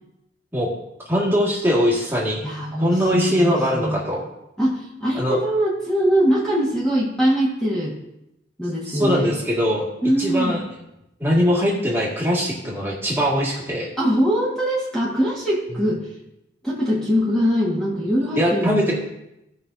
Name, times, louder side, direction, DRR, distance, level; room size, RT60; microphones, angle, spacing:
voice 1, 1.1-2.5 2.8-4.2 5.2-5.4 8.9-9.9 10.2-10.6 11.2-13.9 15.8-15.9 18.4-18.9, equal, 15° right, -4 dB, 1.8 m, -21 dB
voice 2, 2.4-4.0 4.6-7.9 8.6-9.3 10.0-10.6 14.0-16.0 16.6-18.9, equal, 5° left, -7 dB, 1.5 m, -22 dB
16.0 x 5.4 x 2.6 m, 0.87 s
head